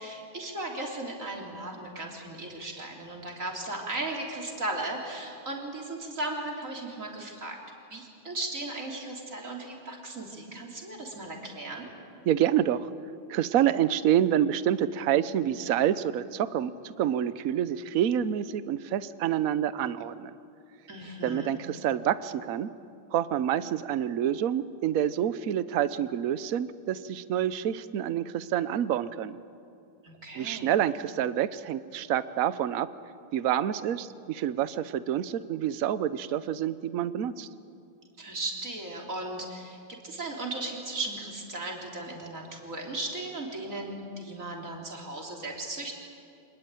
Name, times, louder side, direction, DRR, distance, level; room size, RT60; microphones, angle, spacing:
voice 1, 0.0-7.6 7.9-11.9 20.9-21.5 30.0-30.8 38.2-39.8 40.0-45.9, right 2 dB, 35° right, 0 dB, 3.8 m, -36 dB
voice 2, 12.3-12.9 13.3-20.4 21.2-22.7 23.1-29.4 30.4-32.9 33.3-37.5, right 10 dB, 65° right, 14 dB, 0.8 m, -27 dB
26.0 x 20.5 x 9.1 m, 2.5 s
omnidirectional pair, 2.4 m